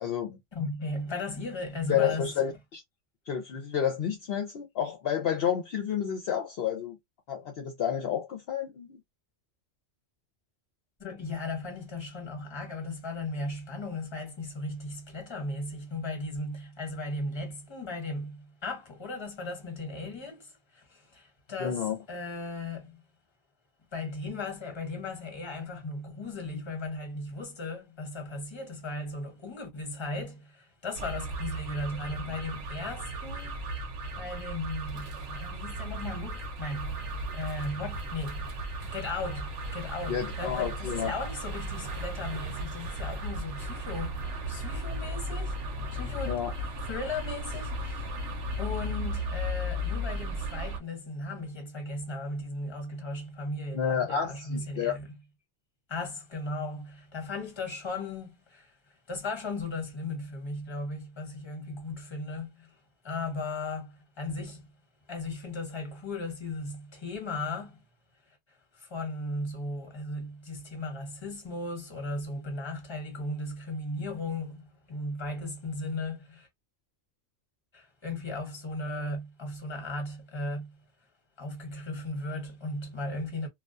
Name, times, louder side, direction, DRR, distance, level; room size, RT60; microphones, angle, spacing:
voice 1, 0.0-0.4 1.9-2.8 3.3-7.0 7.3-9.0 21.6-22.0 40.1-41.1 46.3-46.5 53.7-55.0, left 8 dB, 60° left, 0.7 m, -30 dB
voice 2, 0.5-2.3 11.0-21.8 22.1-23.0 23.9-33.6 34.2-38.5 38.9-46.4 46.8-48.1 48.6-55.1 55.9-58.7 59.1-62.7 63.0-64.7 65.1-67.8 68.7-76.5 77.7-80.8 81.4-83.5, left 2 dB, 25° left, 0.9 m, -36 dB
sound 1, 30.9-50.8, equal, 75° right, 1.0 m, -35 dB
2.3 x 2.2 x 2.4 m
omnidirectional pair, 1.2 m